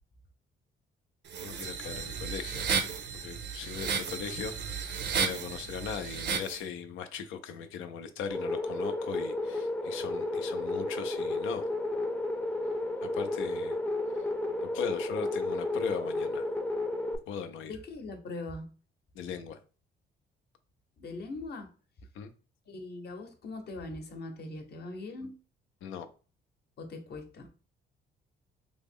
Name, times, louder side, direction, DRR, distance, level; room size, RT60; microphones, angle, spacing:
sound 1, 1.3-6.6, right 6 dB, 60° right, 0.6 m, -33 dB
voice 1, 1.4-2.6 3.2-11.6 13.0-13.8 14.6-16.5 17.3-17.8 19.2-19.6 22.2-22.3 25.8-26.1, left 7 dB, 90° left, 0.5 m, -39 dB
sound 2, 8.3-17.2, left 2 dB, 5° left, 0.5 m, -32 dB
voice 2, 17.7-18.7 21.0-21.7 22.7-25.4 26.8-27.5, left 2 dB, 55° left, 0.8 m, -41 dB
3.4 x 2.0 x 3.5 m
cardioid pair, 90°, 20 cm